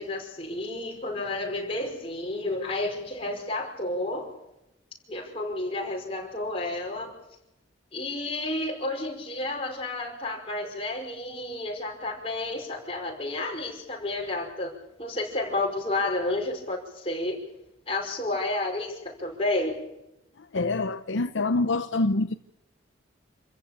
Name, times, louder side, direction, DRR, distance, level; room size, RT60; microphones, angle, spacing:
voice 1, 0.0-4.3 5.1-7.1 7.9-17.4 17.9-19.8, left 2 dB, 30° left, 5.3 m, -31 dB
voice 2, 20.4-22.4, left 2 dB, 70° left, 0.7 m, -26 dB
27.5 x 15.0 x 8.7 m
head